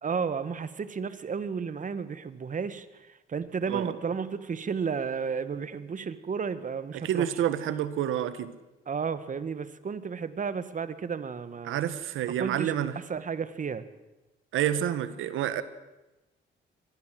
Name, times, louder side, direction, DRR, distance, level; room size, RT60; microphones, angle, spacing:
voice 1, 0.0-7.3 8.9-11.8 12.4-12.7 13.1-13.9, right 6 dB, 40° right, 1.7 m, -33 dB
voice 2, 6.9-8.6 11.6-12.9 14.5-15.6, right 11 dB, 85° right, 1.6 m, -29 dB
24.5 x 19.0 x 7.8 m
cardioid pair, 90°, 20 cm